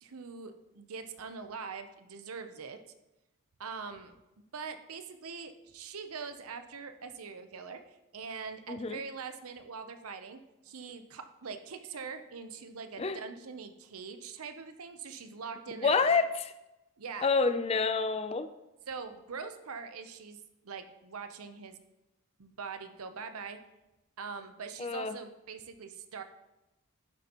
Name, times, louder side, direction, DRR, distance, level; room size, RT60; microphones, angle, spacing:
voice 1, 0.0-2.8 3.6-4.1 4.5-15.9 17.0-17.3 18.9-20.4 20.6-21.8 22.4-23.6 24.2-26.2, right 5 dB, 85° right, 8 dB, 0.8 m, -43 dB
voice 2, 8.7-9.0 13.0-13.2 15.8-16.5 17.2-18.5 24.8-25.2, left 4 dB, 30° left, 11 dB, 0.4 m, -28 dB
10.5 x 7.6 x 3.0 m, 0.96 s
head